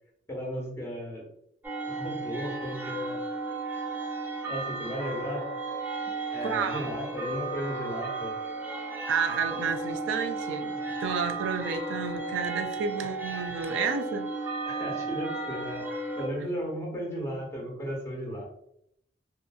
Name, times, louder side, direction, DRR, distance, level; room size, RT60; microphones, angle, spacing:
voice 1, 0.3-1.2 1.9-3.2 4.4-5.5 6.3-8.4 13.0-13.1 14.7-15.8 16.2-18.4, equal, 15° left, -2 dB, 0.8 m, -35 dB
sound 1, 1.6-16.3, right 3 dB, 10° right, 0.4 m, -34 dB
voice 2, 6.4-6.9 9.1-10.8 11.0-14.3, right 6 dB, 90° right, 7 dB, 0.3 m, -31 dB
2.6 x 2.5 x 2.3 m, 0.73 s
head